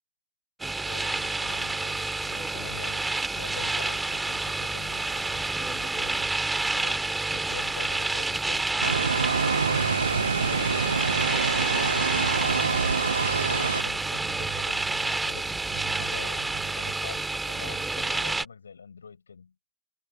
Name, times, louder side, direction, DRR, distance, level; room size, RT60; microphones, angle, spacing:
sound 1, 0.6-18.4, right 3 dB, 10° right, 2.9 m, -29 dB
voice 1, 0.8-6.3 6.7-13.0 13.5-19.5, left 5 dB, 85° left, 4.5 m, -44 dB
sound 2, 8.8-13.8, right 5 dB, 85° right, 0.4 m, -26 dB
sound 3, 9.0-17.0, right 21 dB, 60° right, 3.3 m, -43 dB
figure-of-eight pair, 80°, 0 cm